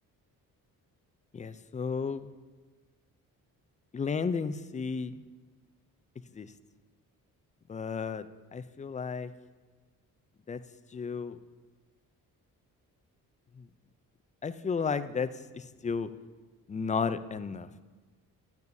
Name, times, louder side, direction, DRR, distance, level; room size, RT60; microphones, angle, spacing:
voice 1, 1.3-2.3 3.9-5.2 6.3-6.5 7.7-8.3 8.5-9.3 10.5-10.6 10.9-11.4 13.6-13.7 14.4-16.1 16.7-17.7, left 5 dB, 20° left, 12 dB, 0.4 m, -33 dB
12.0 x 9.5 x 2.7 m, 1.3 s
cardioid pair, 85°, 37 cm